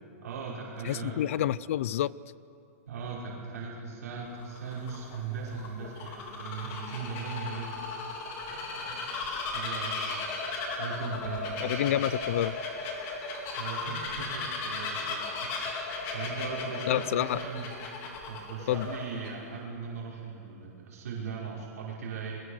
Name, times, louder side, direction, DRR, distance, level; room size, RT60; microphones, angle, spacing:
voice 1, 0.2-1.4 2.9-7.7 8.5-10.2 10.7-11.9 13.6-17.7 18.3-22.4, right 5 dB, 75° right, -5 dB, 5.4 m, -39 dB
voice 2, 0.8-2.1 11.6-12.6 16.9-17.4 18.7-18.9, left 12 dB, 55° left, 21 dB, 0.5 m, -28 dB
Bird vocalization bird call bird song, 4.3-19.3, left 3 dB, 30° left, 3.8 m, -36 dB
30.0 x 22.0 x 6.6 m, 2.7 s
hypercardioid pair, 165°, 8 cm